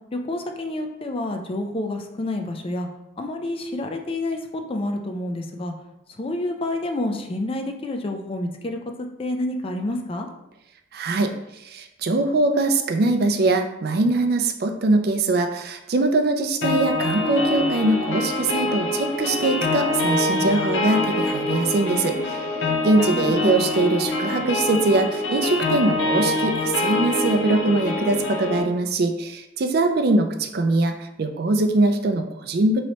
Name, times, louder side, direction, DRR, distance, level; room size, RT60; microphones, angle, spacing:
voice 1, 0.1-2.9 3.2-5.7 6.2-10.3 23.1-23.5, left 1 dB, 30° left, 4 dB, 0.4 m, -28 dB
voice 2, 10.9-11.3 11.6-22.4 22.8-32.8, right 2 dB, 60° right, 5 dB, 0.4 m, -22 dB
sound 1, 16.6-28.6, left 2 dB, 90° left, 0.6 m, -25 dB
3.1 x 2.8 x 4.2 m, 0.86 s
head